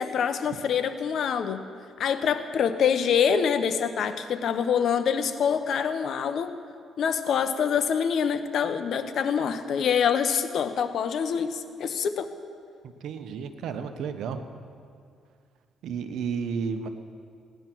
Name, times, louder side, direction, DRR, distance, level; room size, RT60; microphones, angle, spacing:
voice 1, 0.0-1.6 2.0-6.5 7.0-12.3, left 7 dB, 65° left, 9 dB, 0.9 m, -25 dB
voice 2, 12.8-14.5 15.8-16.9, right 6 dB, 80° right, 8 dB, 1.0 m, -32 dB
17.5 x 10.5 x 6.1 m, 2.3 s
cardioid pair, 90°, 0 cm